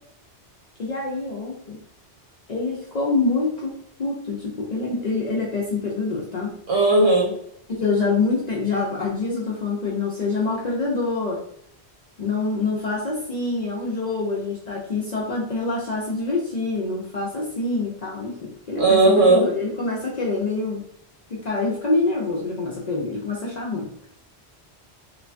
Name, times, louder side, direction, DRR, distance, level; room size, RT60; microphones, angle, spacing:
voice 1, 0.8-1.8 2.5-6.6 7.7-11.4 12.2-20.8 21.3-23.9, left 3 dB, 50° left, -4 dB, 0.5 m, -26 dB
voice 2, 6.7-7.3 18.8-19.4, right 2 dB, 65° right, -3 dB, 1.2 m, -16 dB
3.0 x 2.2 x 2.5 m, 0.68 s
omnidirectional pair, 1.1 m